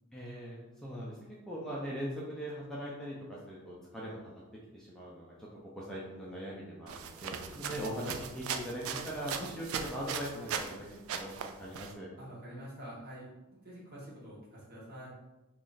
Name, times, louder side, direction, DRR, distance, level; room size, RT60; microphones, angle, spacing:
voice 1, 0.1-1.2 1.5-4.4 4.7-10.9 11.1-11.3 11.6-12.1, equal, ahead, -6 dB, 0.4 m, -40 dB
sound 1, 6.9-10.8 11.1-11.9, right 7 dB, 70° right, 0.3 m, -39 dB
voice 2, 12.2-15.1, equal, 45° right, -6 dB, 1.3 m, -47 dB
3.0 x 2.4 x 3.9 m, 1.0 s
head